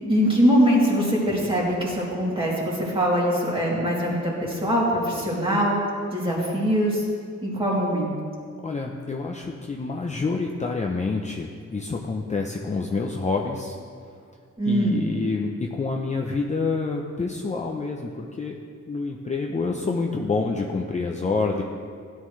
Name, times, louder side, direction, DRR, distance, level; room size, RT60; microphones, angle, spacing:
voice 1, 0.1-5.8 6.1-7.0 7.4-8.1 14.6-15.0, equal, 15° right, -5 dB, 2.9 m, -22 dB
voice 2, 8.6-13.8 14.7-18.6 18.9-21.6, left 3 dB, 25° left, 1 dB, 0.6 m, -27 dB
16.5 x 11.5 x 3.2 m, 2.1 s
wide cardioid pair, 155°, 30 cm